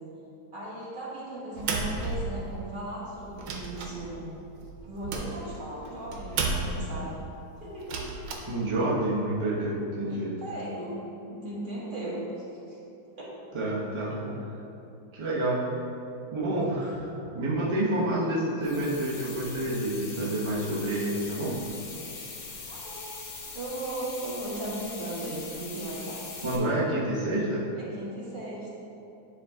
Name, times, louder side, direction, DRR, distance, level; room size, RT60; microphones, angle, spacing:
voice 1, 0.5-4.3 4.8-7.2 7.6-8.0 10.1-11.0 11.3-12.2 12.5-12.8 13.2-13.3 16.5-16.6 22.7-23.1 23.5-26.2 27.8-28.7, right 1 dB, 30° right, -7 dB, 1.4 m, -37 dB
sound 1, 1.6-2.7 3.2-7.0 7.7-8.3, right 3 dB, 80° right, 1.5 m, -33 dB
voice 2, 8.5-10.4 13.5-14.5 15.1-15.7 16.3-17.1 17.3-21.7 26.4-27.7, right 1 dB, 45° right, -7 dB, 0.3 m, -28 dB
sound 2, 18.6-26.6, left 4 dB, 85° left, 1.8 m, -41 dB
9.8 x 3.8 x 3.6 m, 2.7 s
omnidirectional pair, 2.2 m